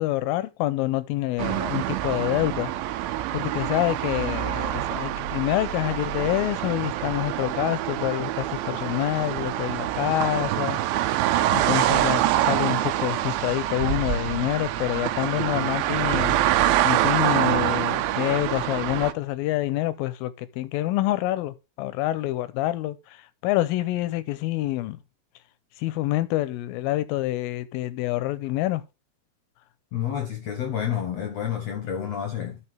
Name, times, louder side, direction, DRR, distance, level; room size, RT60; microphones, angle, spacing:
voice 1, 0.0-2.7 3.3-10.8 11.5-23.2 23.4-25.0 25.8-28.8, left 16 dB, 85° left, 2.3 m, -27 dB
sound 1, 1.4-19.1, right 13 dB, 90° right, 2.4 m, -25 dB
voice 2, 29.9-32.6, left 9 dB, 65° left, 1.7 m, -29 dB
13.5 x 4.6 x 3.4 m
omnidirectional pair, 4.2 m